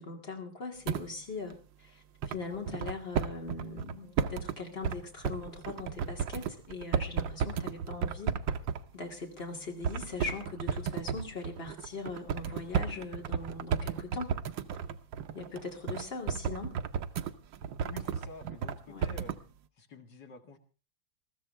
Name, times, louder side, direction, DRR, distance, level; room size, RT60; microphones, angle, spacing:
voice 1, 0.0-8.4 8.9-14.3 15.3-16.8 18.9-19.1, left 3 dB, 30° left, 2 dB, 2.7 m, -40 dB
sound 1, 0.9-1.1 1.5-1.6 2.2-4.6 4.8-5.0 5.2-8.9 9.4-9.5 9.8-18.8 19.0-19.4, right 7 dB, 75° right, 1.6 m, -33 dB
voice 2, 17.8-19.3 19.8-20.6, left 4 dB, 65° left, 4 dB, 2.5 m, -49 dB
21.0 x 14.5 x 3.4 m, 0.34 s
omnidirectional pair, 2.1 m